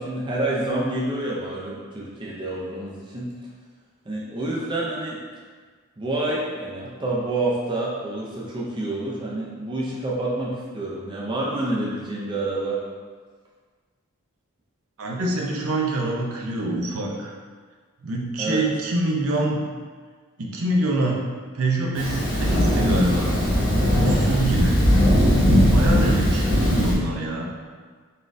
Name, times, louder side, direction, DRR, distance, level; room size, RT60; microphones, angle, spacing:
voice 1, 0.0-3.3 4.1-5.2 6.0-12.8 18.4-18.6, right 2 dB, 20° right, -4 dB, 0.5 m, -28 dB
voice 2, 15.0-17.3 18.0-19.6 20.4-21.2 21.5-23.4 24.0-24.8 25.7-27.5, right 1 dB, 70° right, -2 dB, 0.6 m, -25 dB
Thunder, 22.0-26.9, equal, 20° left, 0.9 m, -19 dB
4.1 x 3.5 x 2.6 m, 1.5 s
head